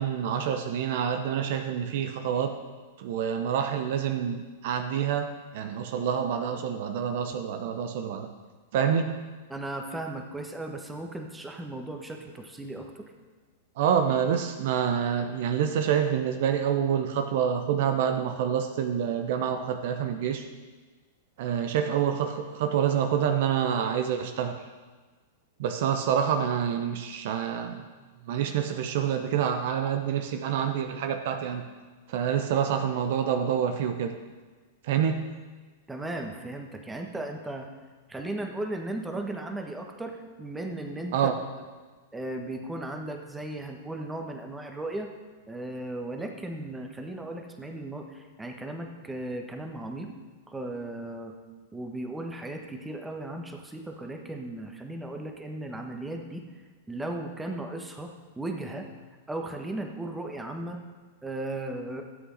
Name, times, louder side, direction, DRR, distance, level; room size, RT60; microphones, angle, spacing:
voice 1, 0.0-2.6 3.0-8.3 8.7-9.2 13.8-20.5 21.4-24.7 25.6-27.9 28.2-31.7 32.1-34.2 34.8-35.3 41.1-41.4, right 8 dB, 55° right, 7 dB, 0.8 m, -27 dB
voice 2, 9.5-13.1 35.9-37.7 38.1-41.3 42.1-45.1 45.5-50.1 50.5-51.4 51.7-56.4 56.9-58.9 59.3-60.8 61.2-62.1, right 1 dB, 10° right, 3 dB, 1.2 m, -36 dB
12.5 x 8.0 x 4.1 m, 1.4 s
hypercardioid pair, 100°, 0 cm